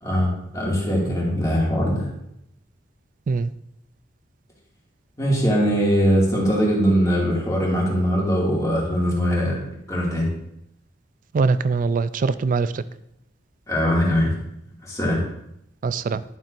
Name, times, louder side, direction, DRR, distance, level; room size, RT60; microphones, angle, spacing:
voice 1, 0.0-2.1 5.2-9.6 9.9-10.3 13.7-14.3 14.8-15.2, equal, 20° left, -4 dB, 2.2 m, -21 dB
voice 2, 11.3-12.8 15.8-16.2, right 4 dB, 45° right, 15 dB, 0.3 m, -22 dB
11.5 x 7.4 x 2.6 m, 0.79 s
head